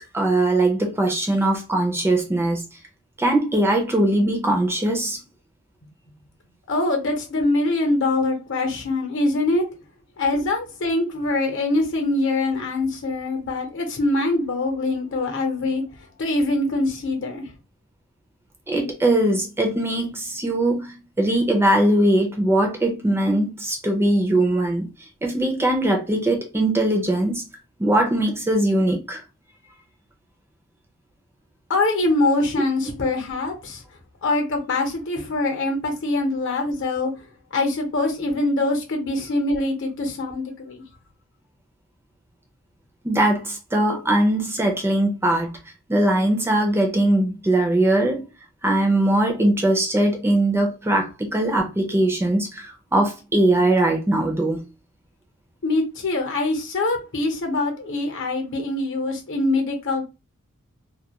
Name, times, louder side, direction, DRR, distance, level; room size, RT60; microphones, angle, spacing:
voice 1, 0.0-2.6 3.2-5.2 18.7-24.9 25.2-27.5 27.8-29.2 43.0-45.5 45.9-48.2 48.6-54.6, right 1 dB, 10° right, 0.4 m, -21 dB
voice 2, 6.7-9.7 10.2-17.5 31.7-33.8 34.2-37.3 37.5-40.8 55.6-60.0, left 2 dB, 60° left, 0.8 m, -23 dB
2.3 x 2.2 x 2.8 m
head